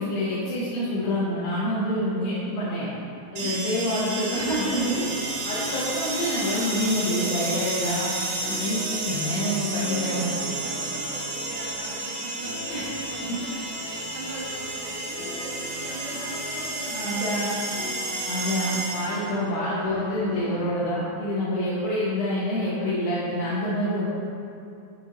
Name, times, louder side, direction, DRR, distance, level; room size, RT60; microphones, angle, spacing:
voice 1, 0.0-2.9 3.3-5.0 5.4-8.1 8.5-10.4 12.7-12.8 16.9-17.6 18.2-24.1, equal, 75° left, -10 dB, 2.2 m, -27 dB
sound 1, 3.4-19.3, right 2 dB, 70° right, 2.1 m, -32 dB
sound 2, 4.5-20.6, equal, 55° left, 2.1 m, -40 dB
voice 2, 10.0-18.3 18.6-18.8, right 2 dB, 85° right, -3 dB, 2.5 m, -41 dB
9.0 x 3.1 x 3.9 m, 2.7 s
omnidirectional pair, 5.4 m